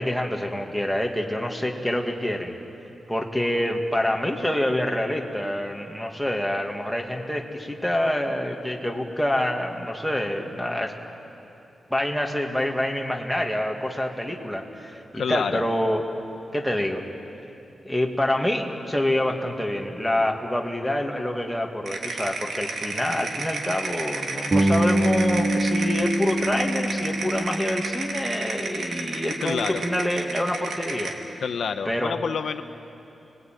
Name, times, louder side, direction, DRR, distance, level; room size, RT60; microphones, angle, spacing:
voice 1, 0.0-2.5 3.1-11.0 11.9-16.0 16.5-17.1 17.8-31.4 31.9-32.2, left 1 dB, ahead, 1 dB, 2.0 m, -26 dB
voice 2, 15.1-15.6 29.4-29.8 31.4-32.6, left 6 dB, 75° left, 8 dB, 0.9 m, -27 dB
sound 1, 21.9-31.2, right 3 dB, 90° right, 2.7 m, -32 dB
Bass guitar, 24.5-28.5, right 1 dB, 30° right, 3.3 m, -25 dB
29.5 x 20.5 x 9.2 m, 2.9 s
wide cardioid pair, 170°, 0 cm